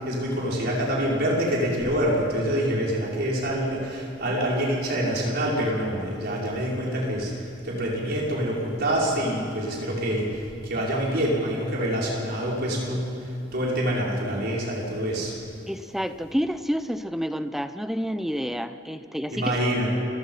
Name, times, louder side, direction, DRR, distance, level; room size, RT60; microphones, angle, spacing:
voice 1, 0.0-15.3 19.3-19.9, equal, 55° right, -4 dB, 5.5 m, -26 dB
voice 2, 15.7-19.5, equal, ahead, 11 dB, 0.6 m, -29 dB
29.5 x 16.0 x 5.7 m, 2.7 s
head